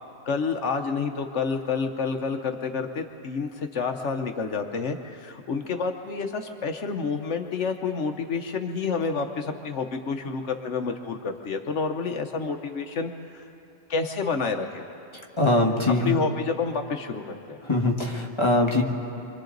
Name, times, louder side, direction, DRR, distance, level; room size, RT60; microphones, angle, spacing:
voice 1, 0.2-13.5 13.9-14.8 16.0-17.6, left 5 dB, 65° left, 5 dB, 1.2 m, -29 dB
voice 2, 15.4-16.1 17.6-18.8, left 2 dB, 20° left, 1 dB, 1.6 m, -22 dB
26.5 x 24.5 x 3.9 m, 2.8 s
omnidirectional pair, 1.3 m